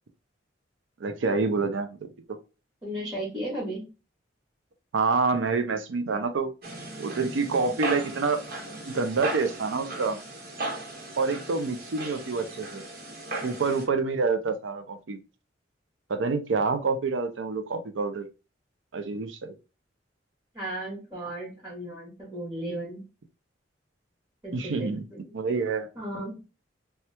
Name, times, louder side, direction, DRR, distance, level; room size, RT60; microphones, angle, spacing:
voice 1, 1.0-2.4 4.9-6.5 7.0-8.4 8.8-10.2 11.2-12.8 13.4-15.2 16.1-18.3 18.9-19.5 24.5-25.0 25.3-25.9, right 4 dB, 85° right, 8 dB, 0.5 m, -27 dB
voice 2, 2.8-3.8 20.5-23.0 24.4-25.2 25.9-26.5, right 1 dB, 20° right, -7 dB, 1.3 m, -35 dB
sound 1, 6.6-13.9, right 2 dB, 55° right, 1.1 m, -37 dB
2.9 x 2.3 x 3.1 m, 0.30 s
head